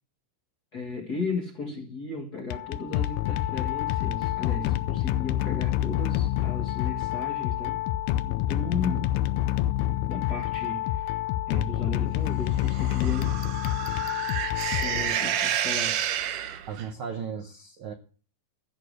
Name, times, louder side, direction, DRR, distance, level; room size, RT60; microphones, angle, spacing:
voice 1, 0.7-7.8 8.3-9.2 10.1-11.2 11.5-13.4 14.8-16.0, left 4 dB, 40° left, 1.4 m, -35 dB
sound 1, 2.4-15.6, left 13 dB, 90° left, 2.3 m, -28 dB
sound 2, 12.6-16.9, right 10 dB, 80° right, 2.5 m, -30 dB
voice 2, 16.7-17.9, right 7 dB, 65° right, 1.4 m, -36 dB
13.0 x 6.8 x 6.5 m
omnidirectional pair, 3.7 m